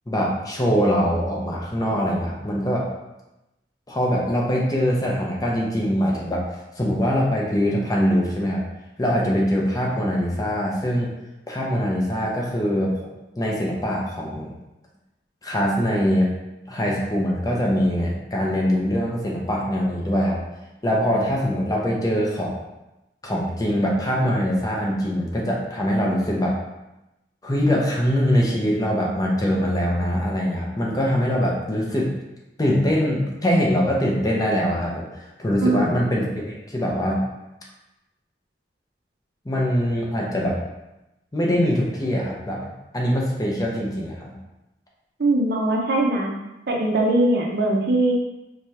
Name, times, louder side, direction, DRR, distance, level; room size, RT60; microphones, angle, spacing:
voice 1, 0.1-2.9 3.9-6.4 6.8-8.6 9.0-11.1 11.5-13.1 13.4-14.5 15.4-16.3 16.7-20.4 20.8-22.6 23.2-26.6 27.4-32.1 32.6-37.2 39.5-40.6 41.3-42.6 42.9-44.4, equal, 20° left, -3 dB, 0.6 m, -23 dB
voice 2, 35.6-36.0 45.2-46.3 46.7-48.1, right 1 dB, 60° right, 0 dB, 0.6 m, -21 dB
4.8 x 2.3 x 2.8 m, 0.96 s
head